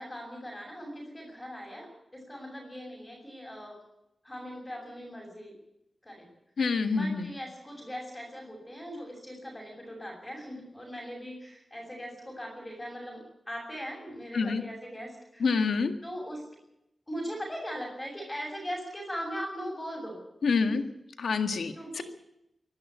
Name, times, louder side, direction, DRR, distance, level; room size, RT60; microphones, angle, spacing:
voice 1, 0.0-3.8 4.2-5.5 6.0-6.3 6.9-13.2 13.5-15.5 16.0-16.4 17.1-20.2 20.5-20.9 21.7-22.0, equal, 10° left, -3 dB, 6.5 m, -40 dB
voice 2, 6.6-7.3 14.3-14.6 15.4-15.9 20.4-20.8 21.2-22.0, left 4 dB, 85° left, 7 dB, 1.8 m, -27 dB
24.5 x 11.5 x 9.3 m, 0.86 s
wide cardioid pair, 125°, 0 cm